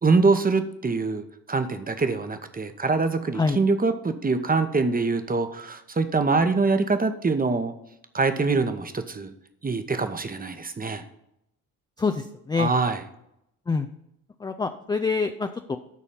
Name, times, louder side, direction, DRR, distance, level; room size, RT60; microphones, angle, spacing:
voice 1, 0.0-7.7 8.1-9.3 9.6-11.0 12.5-13.0, right 3 dB, 20° right, 9 dB, 0.9 m, -24 dB
voice 2, 12.0-12.7 13.7-13.9 14.4-15.8, left 4 dB, 10° left, 7 dB, 0.4 m, -26 dB
12.0 x 4.2 x 5.6 m, 0.79 s
figure-of-eight pair, 40°, 45 cm